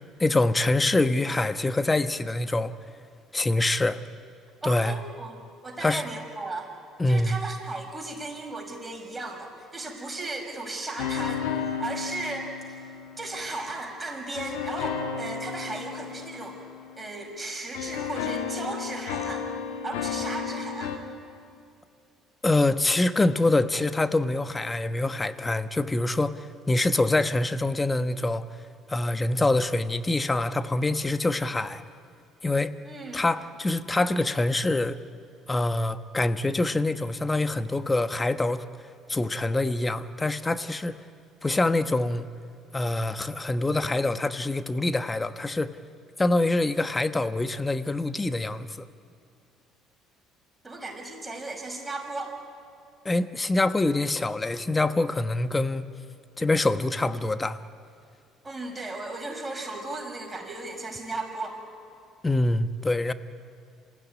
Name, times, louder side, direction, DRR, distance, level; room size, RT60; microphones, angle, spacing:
voice 1, 0.2-2.7 3.3-4.0 4.6-5.0 5.8-6.0 7.0-7.4 22.4-28.4 28.9-31.8 32.4-32.8 33.1-35.0 35.5-41.0 41.4-42.3 42.7-45.8 46.2-48.8 53.0-55.8 56.4-57.6 62.2-63.1, left 2 dB, 20° left, 11 dB, 1.2 m, -25 dB
voice 2, 4.6-6.7 7.1-12.8 13.2-16.6 17.0-19.5 19.8-20.9 32.8-33.2 50.6-52.3 58.4-61.6, right 2 dB, 20° right, 1 dB, 6.3 m, -36 dB
sound 1, 11.0-13.7 14.3-17.4 17.7-21.0, left 7 dB, 80° left, 2.0 m, -33 dB
27.0 x 16.0 x 9.9 m, 2.5 s
hypercardioid pair, 65°, 0 cm